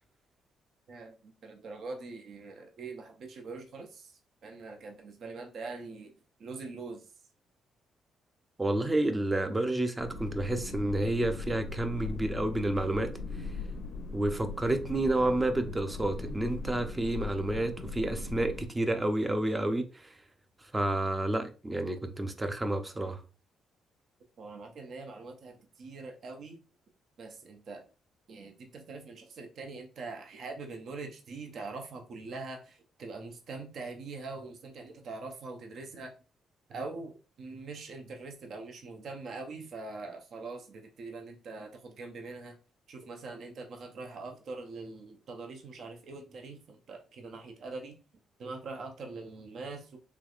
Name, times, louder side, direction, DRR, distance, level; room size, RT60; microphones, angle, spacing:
voice 1, 0.9-6.1 6.4-7.0 24.4-26.6 27.2-27.8 28.3-36.1 36.7-42.6 42.9-48.0 48.4-50.0, right 3 dB, 60° right, 0.7 m, -43 dB
voice 2, 8.6-13.1 14.1-20.1 20.7-23.2, right 1 dB, 15° right, 0.5 m, -30 dB
sound 1, 10.0-18.7, left 3 dB, 75° left, 0.6 m, -39 dB
3.3 x 3.1 x 2.4 m
cardioid pair, 90°, 0 cm